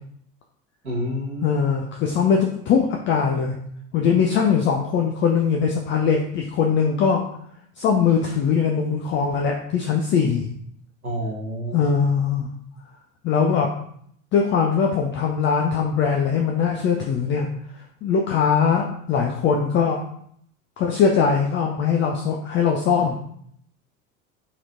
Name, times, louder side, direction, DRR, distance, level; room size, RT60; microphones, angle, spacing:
voice 1, 0.8-1.6 11.0-11.8, equal, 90° right, -3 dB, 1.2 m, -29 dB
voice 2, 1.4-3.5 3.9-7.3 7.8-10.5 11.7-12.5 13.2-13.7 14.3-17.5 18.0-20.0 20.8-23.2, left 6 dB, 30° left, 1 dB, 0.4 m, -21 dB
4.0 x 3.0 x 2.5 m, 0.67 s
figure-of-eight pair, 70°, 42 cm